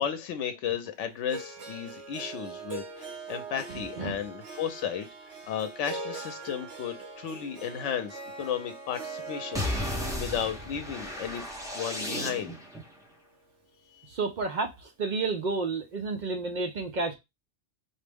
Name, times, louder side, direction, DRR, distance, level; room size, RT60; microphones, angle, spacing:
voice 1, 0.0-5.1 5.5-11.4 11.7-12.6 13.9-14.2, left 8 dB, 85° left, 0.9 m, -34 dB
Harp, 1.3-13.4, right 4 dB, 75° right, 1.2 m, -43 dB
voice 2, 3.7-4.1 14.1-17.2, right 3 dB, 55° right, 0.5 m, -31 dB
sound 1, 9.5-12.8, left 1 dB, 5° right, 0.6 m, -34 dB
4.3 x 2.0 x 3.3 m
omnidirectional pair, 1.2 m